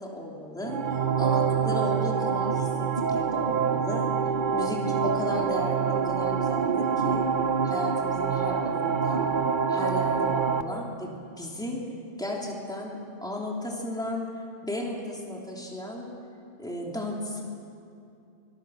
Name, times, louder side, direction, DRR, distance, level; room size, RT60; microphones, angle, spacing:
voice 1, 0.0-4.1 4.5-7.3 7.6-9.3 9.7-11.1 11.4-11.8 12.2-14.3 14.6-16.1 16.6-17.4, left 1 dB, 5° left, -2 dB, 3.0 m, -34 dB
sound 1, 0.6-10.6, right 6 dB, 50° right, 1.0 m, -26 dB
25.5 x 21.0 x 6.5 m, 2.6 s
omnidirectional pair, 1.1 m